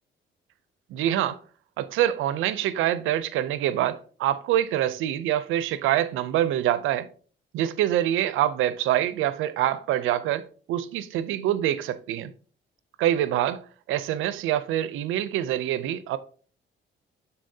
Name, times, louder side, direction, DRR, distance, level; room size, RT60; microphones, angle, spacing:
voice 1, 0.9-1.4 1.8-7.1 7.5-12.3 13.0-13.6 13.9-16.2, right 12 dB, 90° right, 0.5 m, -25 dB
11.5 x 4.1 x 2.7 m
cardioid pair, 90°, 20 cm